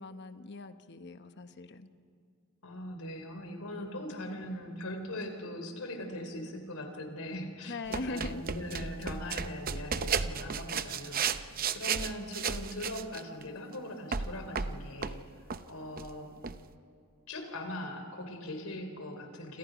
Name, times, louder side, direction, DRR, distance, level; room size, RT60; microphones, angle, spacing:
voice 1, 0.0-1.9 7.7-8.4, left 2 dB, 50° left, 9 dB, 1.0 m, -40 dB
voice 2, 2.6-15.2 15.7-16.3 17.3-19.6, left 1 dB, 85° left, 5 dB, 3.6 m, -40 dB
sound 1, 7.9-13.4 14.1-15.2 15.5-15.6 16.0-16.1 16.4-16.6, right 6 dB, 40° right, 0.7 m, -34 dB
28.0 x 27.0 x 5.1 m, 2.4 s
head